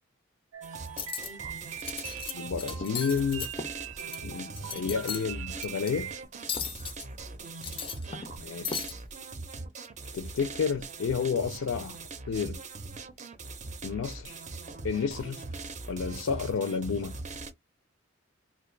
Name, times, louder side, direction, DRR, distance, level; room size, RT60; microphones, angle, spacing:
sound 1, 0.5-6.2, right 10 dB, 85° right, 0.4 m, -42 dB
sound 2, 0.6-17.5, right 3 dB, 35° right, 0.5 m, -41 dB
Cutlery silverware, 0.9-1.3 1.7-2.3 2.6-4.2 4.5-5.2 5.6-5.9 6.5-7.0 7.5-8.4 8.6-8.9, left 7 dB, 25° left, 0.4 m, -36 dB
voice 1, 2.3-3.5 4.2-6.1 8.4-8.9 10.1-12.0 12.3-12.6 13.8-14.4 14.8-15.4 15.9-17.1, left 6 dB, 85° left, 0.4 m, -31 dB
2.5 x 2.3 x 3.7 m
head